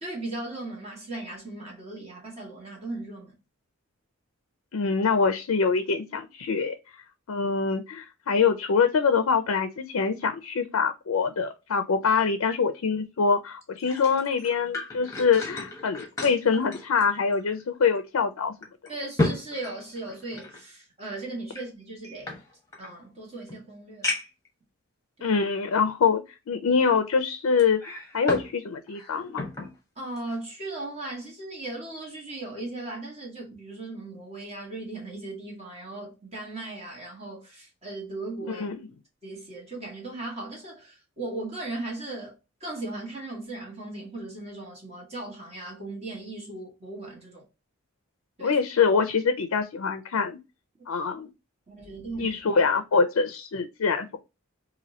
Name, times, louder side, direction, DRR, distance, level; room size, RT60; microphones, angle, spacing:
voice 1, 0.0-3.3 8.3-8.5 12.0-12.2 18.9-22.4 22.8-24.1 25.2-25.3 30.0-38.7 39.2-42.3 42.6-47.5 48.4-48.6 51.7-52.4, right 2 dB, 30° right, 1.7 m, -37 dB
voice 2, 4.7-6.7 7.3-18.5 25.2-29.5 38.5-38.9 48.4-50.4 50.9-51.3 52.2-54.2, left 5 dB, 80° left, 0.5 m, -24 dB
sound 1, 13.6-17.6 18.0-18.1 18.6-20.6 21.5-22.9 23.5-23.6 24.0-24.5 25.2-25.3 27.6-28.5 28.9-29.7 30.2-30.4, left 2 dB, 15° left, 1.1 m, -33 dB
4.1 x 2.6 x 2.7 m
head